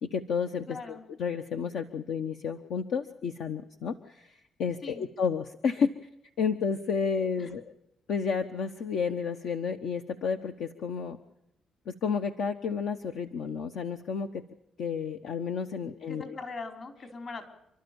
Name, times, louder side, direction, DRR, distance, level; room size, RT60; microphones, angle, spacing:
voice 1, 0.0-6.1 6.4-7.6 8.1-11.2 11.9-14.4 14.8-16.4, left 6 dB, 75° left, 6 dB, 1.1 m, -31 dB
voice 2, 0.7-1.0 4.8-5.1 16.1-17.5, left 4 dB, 50° left, 5 dB, 4.6 m, -40 dB
29.5 x 12.5 x 7.1 m, 0.83 s
cardioid pair, 90°, 0 cm